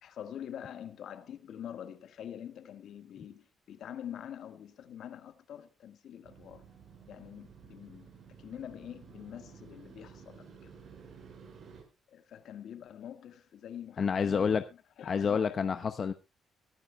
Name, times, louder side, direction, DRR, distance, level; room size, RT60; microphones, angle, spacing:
voice 1, 0.0-6.6 7.1-8.1 8.4-10.7 12.1-14.5 15.0-15.6, left 9 dB, 70° left, 1.6 m, -45 dB
Motorcycle, 6.2-11.8, right 6 dB, 65° right, 5.4 m, -53 dB
voice 2, 14.0-14.6 15.1-16.1, left 6 dB, 45° left, 0.9 m, -28 dB
23.0 x 10.0 x 2.3 m
cardioid pair, 90°, 0 cm